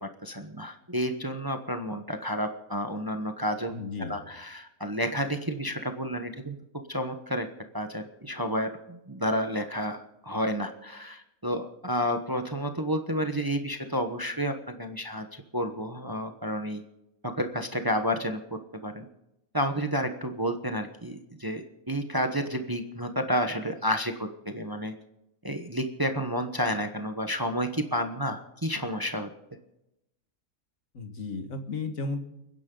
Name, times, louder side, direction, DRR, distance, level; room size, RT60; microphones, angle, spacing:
voice 1, 0.0-3.7 4.0-6.6 6.9-7.5 7.7-16.8 17.2-19.1 19.5-24.9 25.4-29.3, equal, 15° right, 6 dB, 1.0 m, -30 dB
voice 2, 3.7-4.2 30.9-32.2, left 3 dB, 65° left, 6 dB, 2.1 m, -34 dB
30.0 x 10.5 x 3.9 m, 0.90 s
omnidirectional pair, 1.5 m